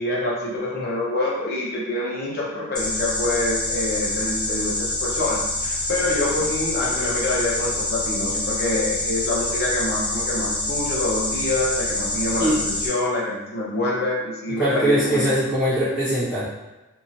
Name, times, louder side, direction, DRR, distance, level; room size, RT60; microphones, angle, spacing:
voice 1, 0.0-15.3, left 2 dB, 45° left, -5 dB, 0.8 m, -26 dB
sound 1, 2.7-12.9, left 1 dB, 20° left, 0.6 m, -26 dB
voice 2, 14.6-16.4, right 1 dB, ahead, -17 dB, 1.0 m, -21 dB
2.7 x 2.6 x 2.8 m, 1.1 s
head